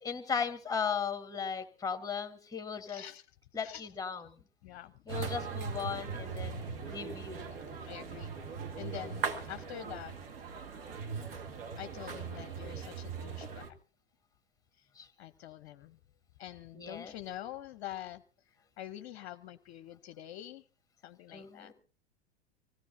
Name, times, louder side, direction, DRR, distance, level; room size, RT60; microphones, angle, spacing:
voice 1, 0.0-3.0 3.5-4.3 5.1-7.5 15.0-15.1 16.7-17.1 21.3-21.7, left 6 dB, 10° left, 9 dB, 1.5 m, -37 dB
voice 2, 2.9-3.3 3.6-3.9 4.6-4.9 7.9-8.3 8.8-10.2 11.8-13.6 15.2-16.0 16.4-18.2 18.8-20.6 21.0-21.7, left 12 dB, 45° left, 12 dB, 0.8 m, -45 dB
sound 1, 5.1-13.7, right 5 dB, 60° right, 2.0 m, -40 dB
25.0 x 17.0 x 2.8 m, 0.36 s
figure-of-eight pair, 90°, 33 cm